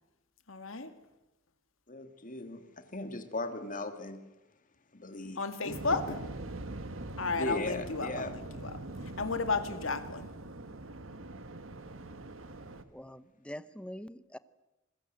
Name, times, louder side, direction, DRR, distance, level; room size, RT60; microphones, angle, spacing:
voice 1, 0.5-1.0 5.4-6.1 7.2-8.9 9.2-10.3, left 4 dB, 80° left, 2.4 m, -33 dB
voice 2, 1.9-4.2 4.9-5.4 5.6-5.7 6.1-6.2 7.4-8.3, left 2 dB, 40° left, 2.6 m, -38 dB
Waves surf, 5.7-12.8, right 2 dB, 75° right, 1.6 m, -43 dB
voice 3, 12.9-14.4, equal, 5° left, 0.8 m, -44 dB
27.0 x 21.5 x 7.9 m
head